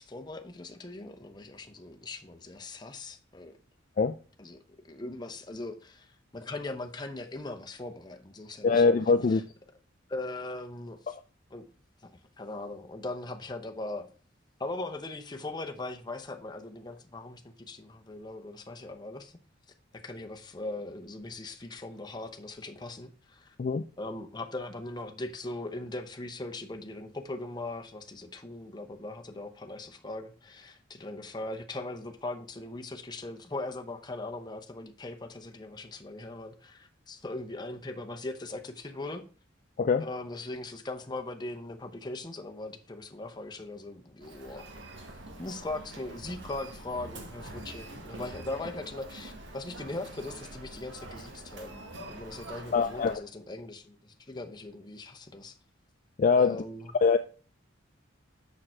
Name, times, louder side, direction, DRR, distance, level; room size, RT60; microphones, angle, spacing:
voice 1, 0.0-3.5 4.4-4.6 4.8-8.9 9.3-9.4 10.1-11.1 11.5-11.6 12.0-14.1 14.6-19.4 19.9-23.5 24.0-39.2 40.0-44.7 45.4-55.6 56.3-56.9, left 2 dB, 20° left, 0.7 m, -40 dB
voice 2, 8.6-9.5 11.1-11.2 23.6-23.8 39.8-40.1 52.7-53.2 56.2-56.6 57.0-57.2, left 4 dB, 40° left, 0.3 m, -23 dB
Human voice, 44.2-53.2, right 1 dB, 70° right, 1.5 m, -45 dB
6.6 x 6.2 x 4.4 m
head